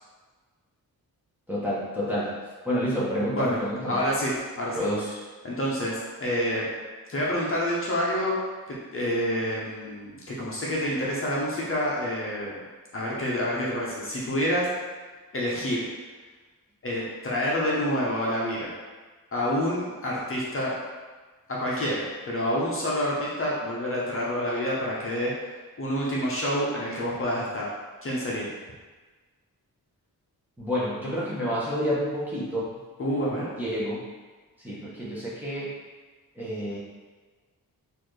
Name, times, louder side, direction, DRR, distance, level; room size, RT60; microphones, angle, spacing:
voice 1, 1.5-2.4 2.6-4.0 4.7-5.2 30.6-32.7 33.6-34.0 34.6-35.7 36.4-36.8, equal, 5° right, -8 dB, 0.8 m, -29 dB
voice 2, 3.8-4.8 5.4-6.7 7.1-8.3 8.7-12.5 12.9-14.7 15.3-15.8 16.8-18.7 19.3-20.7 21.5-25.3 25.8-27.7 28.0-28.5 33.0-33.5, equal, 35° left, -5 dB, 0.7 m, -28 dB
4.0 x 2.6 x 3.2 m, 1.4 s
wide cardioid pair, 145°, 36 cm